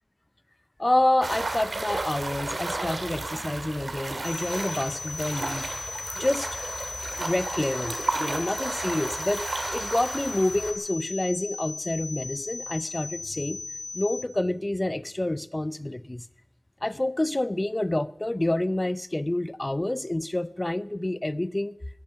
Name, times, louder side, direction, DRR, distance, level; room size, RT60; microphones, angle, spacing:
voice 1, 0.8-5.7 6.2-6.5 7.2-9.5 9.7-13.6 13.9-16.3 16.8-21.8, left 1 dB, 25° left, 0.6 m, -28 dB
sound 1, 1.2-10.7, right 2 dB, 75° right, 2.0 m, -33 dB
sound 2, 4.2-14.2, left 4 dB, 80° left, 1.9 m, -37 dB
19.5 x 10.5 x 6.9 m
wide cardioid pair, 60°, 0 cm